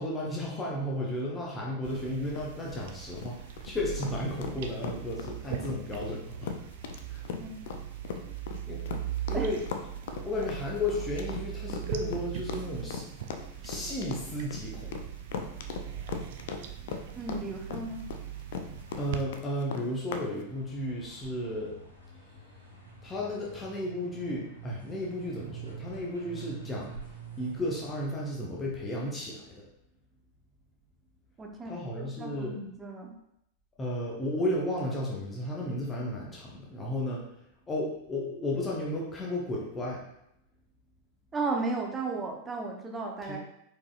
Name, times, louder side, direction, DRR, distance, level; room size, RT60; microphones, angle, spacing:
voice 1, 0.0-3.4 3.6-6.5 7.1-7.2 8.7-8.8 9.3-9.6 10.2-13.0 13.6-14.9 19.0-21.7 23.0-26.9 27.4-29.4 31.6-32.6 33.8-37.2 37.7-40.0 43.2-43.4, left 1 dB, 20° left, -3 dB, 0.8 m, -33 dB
sound 1, 1.8-19.2, right 11 dB, 55° right, 0.4 m, -40 dB
sound 2, 1.9-20.3, left 6 dB, 55° left, 0.4 m, -38 dB
voice 2, 7.4-7.7 8.2-8.3 9.3-9.5 17.1-18.1 31.4-31.7 32.2-33.2 41.3-43.4, right 3 dB, 20° right, 2 dB, 0.7 m, -34 dB
sound 3, 16.8-28.1, right 7 dB, 85° right, 0.9 m, -48 dB
4.8 x 4.2 x 2.4 m, 0.78 s
figure-of-eight pair, 90°, 0 cm